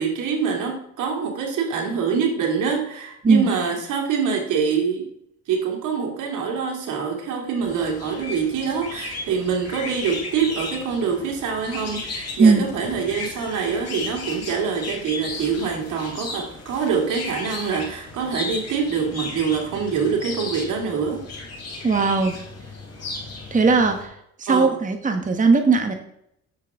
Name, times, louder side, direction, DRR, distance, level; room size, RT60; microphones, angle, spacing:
voice 1, 0.0-5.1 5.5-21.2 24.5-24.7, right 6 dB, 80° right, 1 dB, 2.5 m, -25 dB
sound 1, 7.6-24.0, left 3 dB, 55° left, 4.0 m, -35 dB
voice 2, 21.8-22.3 23.5-24.1 24.4-25.9, right 4 dB, 25° right, 5 dB, 1.1 m, -18 dB
9.6 x 7.6 x 3.6 m, 0.75 s
cardioid pair, 90°, 30 cm